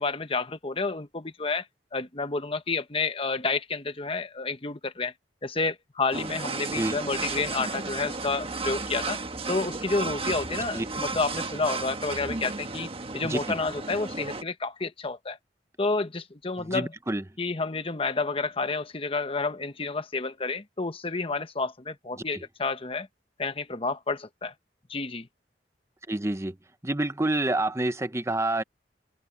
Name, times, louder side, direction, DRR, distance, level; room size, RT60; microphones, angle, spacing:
voice 1, 0.0-1.7 1.9-5.1 5.4-9.2 9.5-15.4 15.8-16.9 17.4-23.1 23.4-24.5 24.9-25.3, left 3 dB, 30° left, 1.2 m, -30 dB
sound 1, 6.1-14.4, right 3 dB, 35° right, 1.3 m, -34 dB
voice 2, 10.7-11.2 13.2-13.6 16.6-17.2 22.2-22.5 26.1-26.6 26.8-28.6, right 2 dB, 15° right, 0.8 m, -28 dB
open air
head